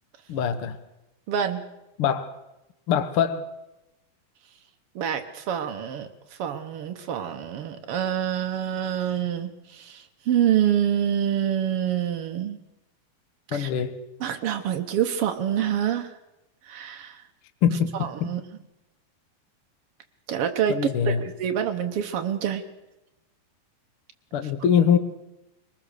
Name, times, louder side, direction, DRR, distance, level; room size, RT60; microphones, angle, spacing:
voice 1, 0.3-0.8 2.0-2.3 2.9-3.5 13.5-13.9 17.6-18.3 20.7-21.2 24.3-25.0, left 8 dB, 65° left, 10 dB, 1.3 m, -23 dB
voice 2, 1.3-1.6 4.9-6.1 6.4-12.6 13.5-13.7 14.2-16.1 16.7-17.2 18.0-18.4 20.3-20.8 21.0-22.6, right 9 dB, 85° right, 6 dB, 1.2 m, -26 dB
24.5 x 20.0 x 6.6 m, 0.95 s
omnidirectional pair, 4.3 m